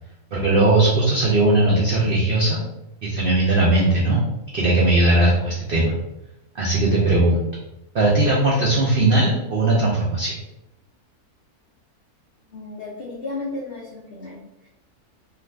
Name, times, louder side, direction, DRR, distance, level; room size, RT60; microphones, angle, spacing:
voice 1, 0.3-2.6 3.0-4.2 4.5-6.0 6.5-7.4 7.9-10.3, right 2 dB, 85° right, -4 dB, 0.4 m, -18 dB
voice 2, 12.5-14.7, left 3 dB, 75° left, -4 dB, 0.5 m, -34 dB
2.4 x 2.4 x 3.2 m, 0.91 s
omnidirectional pair, 1.6 m